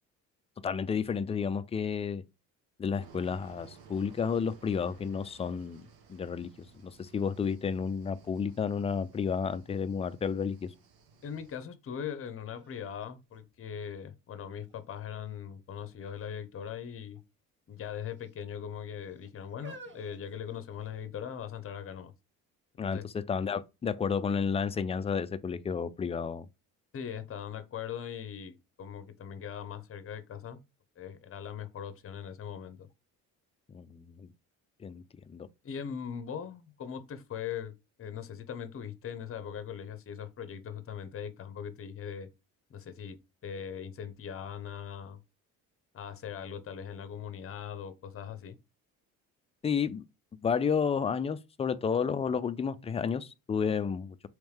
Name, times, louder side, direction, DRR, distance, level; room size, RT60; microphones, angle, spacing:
voice 1, 0.6-2.2 2.8-5.8 6.1-6.5 6.8-10.7 22.8-26.5 33.7-34.3 34.8-35.0 35.3-35.5 49.6-50.0 50.4-54.3, left 6 dB, 20° left, 0.3 m, -31 dB
sound 1, 3.0-11.6, right 6 dB, 80° right, 1.1 m, -57 dB
voice 2, 11.2-17.2 17.7-22.1 22.8-23.0 26.9-30.6 31.0-32.9 35.6-37.7 38.0-42.3 42.7-43.2 43.4-45.2 45.9-48.6, left 8 dB, 35° left, 0.7 m, -40 dB
sound 2, 12.0-12.1 12.6-14.1 14.7-15.2 16.0-16.4 16.7-16.8 17.7-18.4 19.1-21.1 21.9-22.0, right 2 dB, 30° right, 1.5 m, -53 dB
3.3 x 3.1 x 3.2 m
cardioid pair, 85°, 36 cm